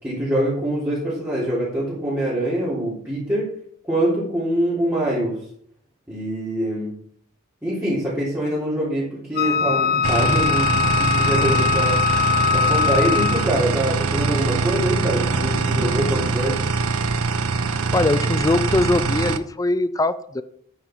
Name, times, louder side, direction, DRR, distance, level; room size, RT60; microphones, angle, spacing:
voice 1, 0.0-3.5 3.9-5.4 6.1-6.9 7.6-12.0 12.5-16.6, right 1 dB, 10° right, -10 dB, 3.5 m, -24 dB
Wind instrument woodwind instrument, 9.4-13.6, left 7 dB, 45° left, 0.9 m, -21 dB
sound 1, 9.4-16.3, right 2 dB, 60° right, 1.2 m, -34 dB
sound 2, 10.0-19.4, right 4 dB, 80° right, 0.7 m, -23 dB
voice 2, 17.6-20.4, left 2 dB, 15° left, 14 dB, 0.4 m, -22 dB
9.6 x 9.1 x 4.6 m, 0.65 s
head